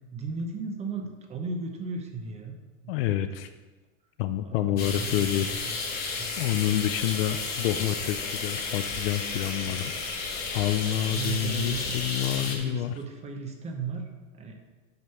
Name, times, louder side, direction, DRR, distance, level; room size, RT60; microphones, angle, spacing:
voice 1, 0.1-2.6 2.8-2.9 4.4-6.3 9.7-9.9 11.1-11.9 12.4-14.6, right 4 dB, 15° right, 4 dB, 0.8 m, -36 dB
voice 2, 2.9-3.5 4.2-5.5 5.9-9.9 10.5-12.9, left 12 dB, 50° left, 9 dB, 0.5 m, -28 dB
sound 1, 4.8-12.6, left 4 dB, 25° left, 1.2 m, -33 dB
8.0 x 5.2 x 5.6 m, 1.3 s
supercardioid pair, 155°, 39 cm